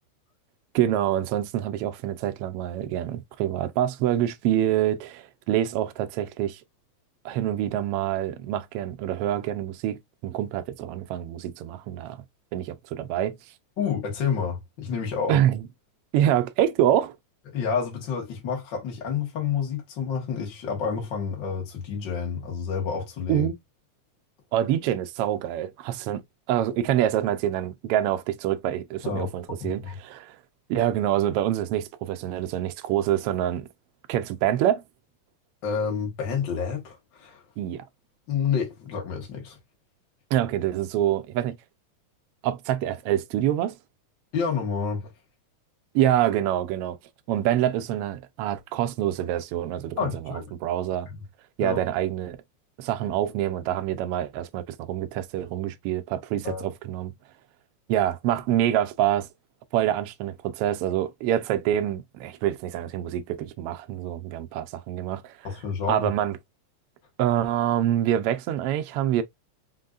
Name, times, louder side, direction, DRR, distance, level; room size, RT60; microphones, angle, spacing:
voice 1, 0.7-6.6 7.2-12.2 12.5-13.4 15.3-15.6 16.1-17.1 23.3-23.5 24.5-26.2 26.5-30.4 30.7-33.7 34.1-34.8 37.6-37.8 40.3-41.6 42.4-43.7 45.9-47.0 47.3-50.1 50.6-51.1 51.6-52.4 52.8-57.1 57.9-59.3 59.7-65.3 65.9-66.4 67.2-69.2, right 11 dB, 85° right, 1.3 m, -26 dB
voice 2, 13.8-15.4 17.5-23.5 29.0-30.0 35.6-37.4 38.3-39.6 44.3-45.1 50.0-50.5 51.6-51.8 56.4-56.6 65.4-66.1, left 6 dB, 45° left, 1.8 m, -29 dB
5.0 x 3.8 x 2.4 m
omnidirectional pair, 3.4 m